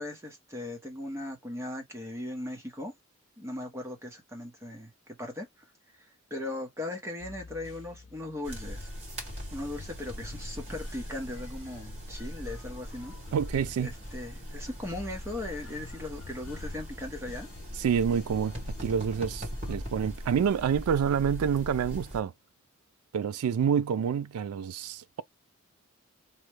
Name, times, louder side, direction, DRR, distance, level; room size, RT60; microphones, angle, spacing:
voice 1, 0.0-2.9 3.4-5.6 5.9-8.9 9.5-13.1 13.8-17.5, left 1 dB, 10° right, 0.7 m, -38 dB
sound 1, 7.2-19.8, left 5 dB, 75° left, 0.5 m, -50 dB
sound 2, 8.4-22.2, equal, 30° right, 1.6 m, -40 dB
voice 2, 13.3-13.9 17.8-18.5 18.8-22.3 23.1-25.2, right 7 dB, 85° right, 0.3 m, -28 dB
3.1 x 2.1 x 3.1 m
head